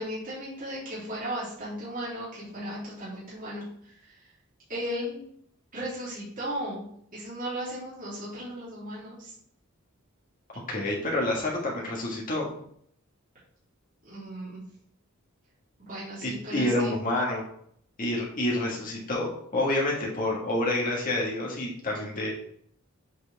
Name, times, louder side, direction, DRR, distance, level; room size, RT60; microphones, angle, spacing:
voice 1, 0.0-4.3 4.7-5.2 5.7-6.8 7.1-9.3 14.0-14.6 15.8-16.9, equal, 40° right, -9 dB, 3.1 m, -36 dB
voice 2, 10.7-12.5 16.2-17.4 18.0-22.3, left 1 dB, 40° left, -3 dB, 1.8 m, -28 dB
8.0 x 4.6 x 3.5 m, 0.66 s
head